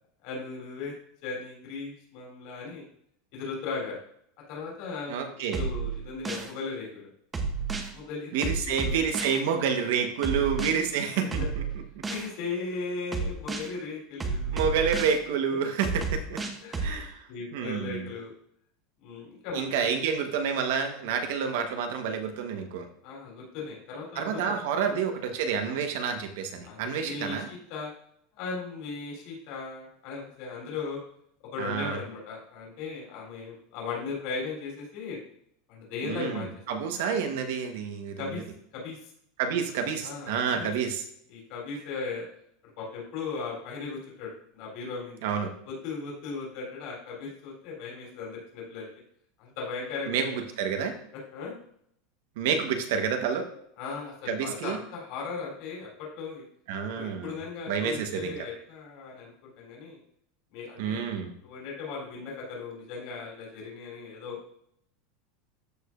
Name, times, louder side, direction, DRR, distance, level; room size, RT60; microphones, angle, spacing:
voice 1, 0.2-0.9 1.2-2.8 3.3-4.0 4.5-5.2 5.5-7.1 7.9-9.0 9.9-10.0 10.3-10.4 12.1-14.8 16.6-17.0 17.3-18.3 19.0-19.9 23.0-24.6 24.9-25.0 25.6-25.8 26.6-27.9 28.4-31.0 31.5-35.2 35.7-36.5 38.2-38.4 38.7-39.1 40.0-40.7 41.3-42.3 42.8-45.2 45.7-48.9 49.4-50.4 51.3-51.5 53.8-56.4 56.9-60.0 60.5-61.0 61.4-64.4, left 4 dB, 50° left, -2 dB, 3.3 m, -37 dB
voice 2, 5.1-5.6 8.3-11.6 14.5-16.4 16.8-17.3 17.5-18.1 19.5-22.9 24.1-27.5 31.6-32.0 36.0-38.3 39.4-41.0 45.2-45.5 50.1-50.9 52.4-53.5 54.3-54.8 56.7-57.3 57.7-58.3 60.8-61.3, right 6 dB, 65° right, 5 dB, 1.2 m, -29 dB
sound 1, 5.5-6.5 7.3-7.9 8.4-9.4 10.2-10.7 11.3-12.3 13.1-13.7 14.2-15.2 15.8-16.9, right 4 dB, 15° right, 0.8 m, -31 dB
13.5 x 4.9 x 2.5 m, 0.70 s
supercardioid pair, 170°, 0 cm